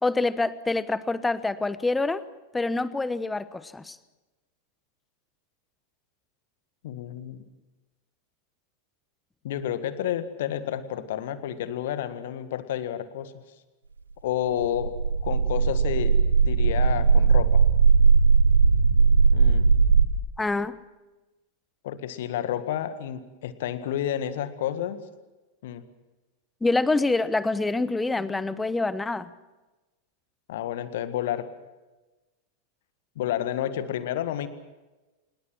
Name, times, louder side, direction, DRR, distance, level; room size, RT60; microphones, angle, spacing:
voice 1, 0.0-2.2 2.5-4.0 20.4-20.8 26.6-29.3, left 3 dB, 10° left, 16 dB, 1.0 m, -26 dB
voice 2, 6.8-7.4 9.4-13.4 14.2-15.0 15.2-17.6 19.3-19.7 21.8-25.0 25.6-25.8 30.5-31.5 33.1-34.5, left 11 dB, 55° left, 11 dB, 1.8 m, -30 dB
sound 1, 14.6-20.1, right 5 dB, 80° right, 1.4 m, -19 dB
27.0 x 21.5 x 6.2 m, 1.1 s
figure-of-eight pair, 90°, 0 cm